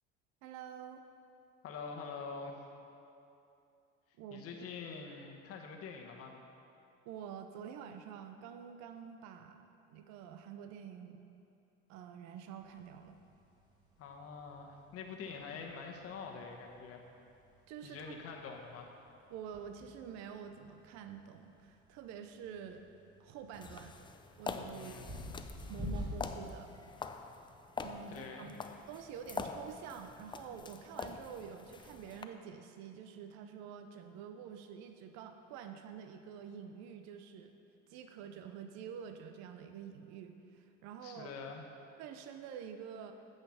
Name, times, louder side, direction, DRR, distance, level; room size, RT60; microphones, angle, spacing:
voice 1, 0.4-1.0 4.2-4.7 7.1-11.2 11.9-13.2 17.7-18.2 19.3-22.9 23.2-23.9 24.4-25.2 25.7-26.7 27.8-37.5 37.9-41.3 42.0-43.1, right 8 dB, 65° right, 7 dB, 0.7 m, -48 dB
voice 2, 1.6-2.6 4.3-6.3 14.0-17.0 17.8-18.9 24.7-25.1 28.1-28.5 41.0-41.7, left 5 dB, 55° left, 1 dB, 1.2 m, -45 dB
sound 1, 12.6-26.7, left 1 dB, 15° right, 2.0 m, -49 dB
sound 2, 23.5-32.2, left 4 dB, 15° left, 0.4 m, -45 dB
9.3 x 5.7 x 5.8 m, 2.7 s
supercardioid pair, 90°, 29 cm